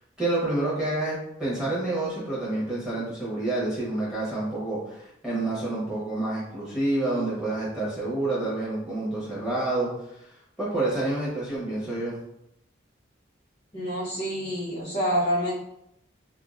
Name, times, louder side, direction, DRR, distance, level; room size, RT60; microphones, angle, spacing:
voice 1, 0.2-10.3 10.6-12.1, right 2 dB, 5° right, -9 dB, 1.0 m, -28 dB
voice 2, 13.7-15.5, equal, 25° left, -9 dB, 0.7 m, -27 dB
2.6 x 2.5 x 2.4 m, 0.79 s
head